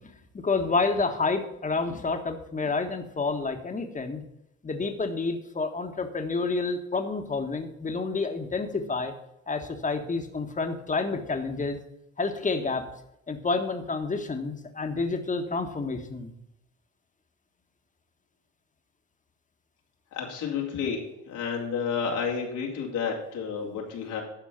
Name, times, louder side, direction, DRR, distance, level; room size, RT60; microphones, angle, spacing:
voice 1, 0.3-4.2 4.6-9.1 9.5-11.8 12.2-12.9 13.3-16.3, left 3 dB, 25° left, 6 dB, 1.4 m, -29 dB
voice 2, 20.1-21.0 21.3-24.2, left 6 dB, 90° left, -1 dB, 2.8 m, -30 dB
12.0 x 4.5 x 7.2 m, 0.83 s
cardioid pair, 90°, 30 cm